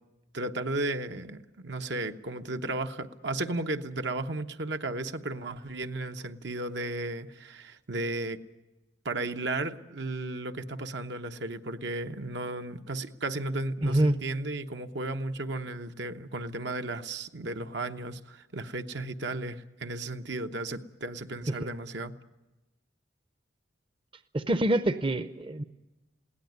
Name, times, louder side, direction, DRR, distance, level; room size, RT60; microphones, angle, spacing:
voice 1, 0.3-8.4 9.0-22.1, right 2 dB, 70° right, 7 dB, 1.1 m, -34 dB
voice 2, 13.8-14.2 21.6-21.7 24.3-25.6, right 1 dB, 30° right, 11 dB, 0.7 m, -26 dB
21.5 x 17.0 x 9.5 m, 1.1 s
head